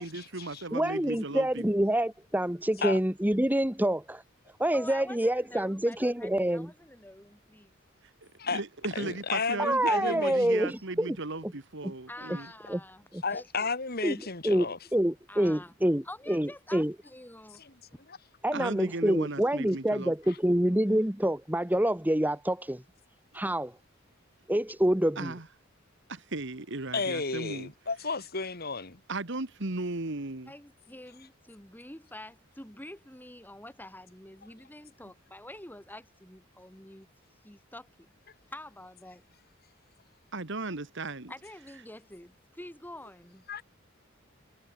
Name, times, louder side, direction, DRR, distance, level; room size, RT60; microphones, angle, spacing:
voice 1, 0.0-1.6 8.5-12.5 18.5-20.1 20.5-20.6 25.2-25.5 26.1-27.7 29.1-30.5 40.3-41.3, right 2 dB, 60° right, 1.8 m, -36 dB
voice 2, 0.7-4.2 4.6-6.7 9.6-11.2 11.4-11.5 11.8-11.9 12.7-12.8 13.1-13.2 14.0-14.1 14.4-16.9 18.4-22.8 23.3-23.7 24.5-25.3, right 1 dB, 10° right, 1.4 m, -27 dB
voice 3, 4.7-7.7 12.1-13.7 15.3-15.7 16.0-17.6 30.5-37.1 37.4-38.2 38.5-39.2 41.3-43.5, left 1 dB, 10° left, 5.6 m, -47 dB
voice 4, 8.9-10.3 13.2-14.8 26.9-29.0 43.5-43.6, left 4 dB, 50° left, 2.7 m, -32 dB
head